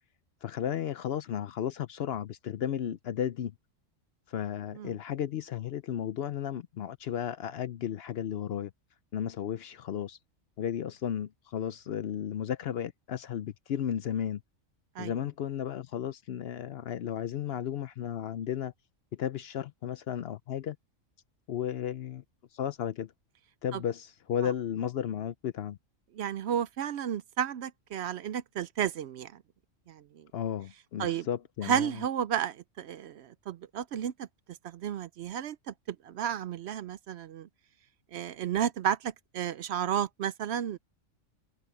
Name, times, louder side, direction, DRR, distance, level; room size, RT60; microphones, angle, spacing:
voice 1, 0.4-3.5 4.3-8.7 9.1-10.2 10.6-14.4 15.0-18.7 19.1-20.8 21.5-22.2 22.5-23.1 23.6-25.8 30.3-32.0, left 9 dB, 65° left, 0.7 m, -34 dB
voice 2, 26.2-29.3 29.9-30.2 31.0-31.3 31.6-34.3 34.6-37.5 38.1-40.8, right 9 dB, 65° right, 0.8 m, -32 dB
omnidirectional pair, 1.3 m